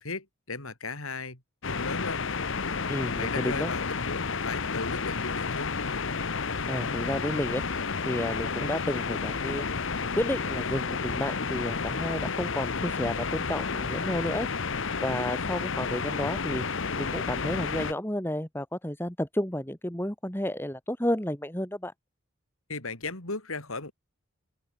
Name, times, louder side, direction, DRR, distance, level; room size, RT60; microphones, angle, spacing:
voice 1, 0.0-2.3 2.7-5.8 22.7-23.9, left 3 dB, 80° left, 4.0 m, -37 dB
sound 1, 1.6-17.9, left 5 dB, 60° left, 1.0 m, -31 dB
voice 2, 2.9-3.7 6.7-9.9 10.2-14.5 15.0-21.9, left 1 dB, 10° left, 1.8 m, -32 dB
open air
head